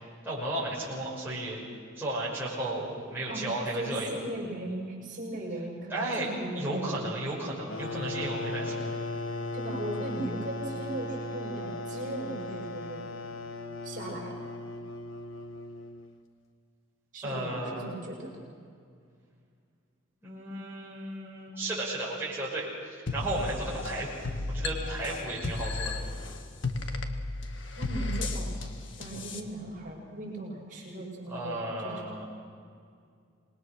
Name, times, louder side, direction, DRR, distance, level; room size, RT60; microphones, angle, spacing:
voice 1, 0.2-1.6 2.0-4.2 5.9-6.3 6.5-8.9 17.2-17.9 20.2-24.1 24.5-26.0 31.3-32.2, right 1 dB, 10° right, -7 dB, 6.0 m, -34 dB
voice 2, 3.7-7.0 9.5-13.0 13.8-14.3 17.1-18.3 27.8-28.5 29.0-32.2, right 1 dB, 40° right, -3 dB, 6.6 m, -38 dB
sound 1, 7.7-16.2, left 2 dB, 80° left, 1.4 m, -37 dB
sound 2, 23.1-29.4, left 2 dB, 65° left, 1.7 m, -34 dB
27.0 x 21.5 x 6.5 m, 2.2 s
head